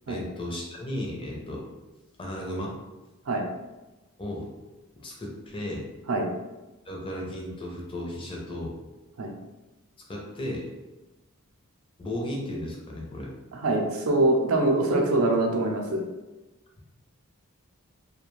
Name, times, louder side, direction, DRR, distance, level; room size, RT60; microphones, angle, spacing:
voice 1, 0.1-1.7 2.2-2.8 4.2-4.5 4.9-5.9 6.8-8.8 10.1-10.6 12.0-13.3, left 1 dB, 25° left, -2 dB, 0.5 m, -34 dB
voice 2, 13.5-16.0, right 2 dB, 75° right, 1 dB, 0.5 m, -24 dB
2.4 x 2.2 x 3.0 m, 1.1 s
head